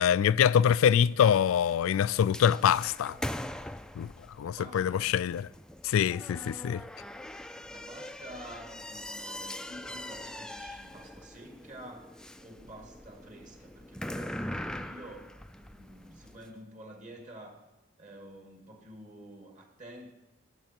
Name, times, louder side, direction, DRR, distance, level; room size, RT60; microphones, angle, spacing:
voice 1, 0.0-3.2 4.0-4.1 4.4-5.5 5.8-6.8, left 8 dB, 90° left, 0.3 m, -24 dB
sound 1, 1.0-16.5, left 1 dB, 5° left, 0.3 m, -42 dB
voice 2, 4.4-5.1 7.4-15.3 15.6-17.6 18.0-20.1, right 1 dB, 40° right, 2.3 m, -49 dB
18.5 x 8.3 x 4.4 m
head